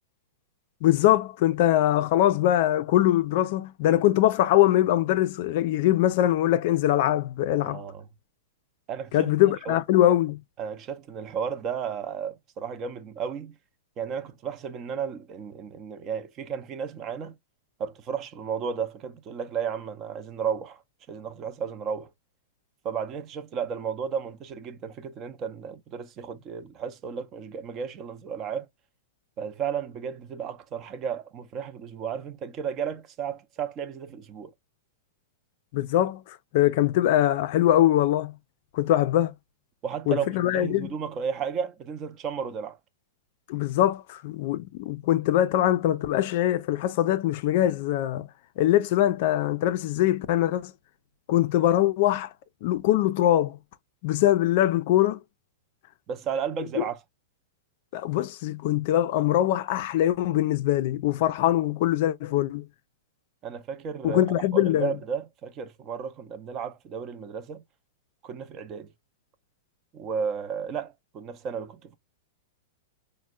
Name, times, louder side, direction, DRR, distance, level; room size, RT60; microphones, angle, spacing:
voice 1, 0.8-7.8 9.1-10.4 35.7-38.3 38.7-39.3 40.1-40.9 43.5-48.3 48.6-50.7 51.3-52.3 52.6-53.6 54.0-55.2 56.7-56.8 57.9-62.6 64.0-64.9, left 13 dB, 55° left, 0.4 m, -22 dB
voice 2, 7.6-8.1 8.9-9.8 10.6-13.5 14.0-17.3 17.8-20.8 21.1-22.1 22.8-28.7 29.4-34.5 39.8-42.8 56.1-57.0 63.4-67.6 68.2-68.9 69.9-72.0, right 7 dB, 35° right, 0.6 m, -33 dB
4.2 x 2.1 x 2.3 m
hypercardioid pair, 120°, 0 cm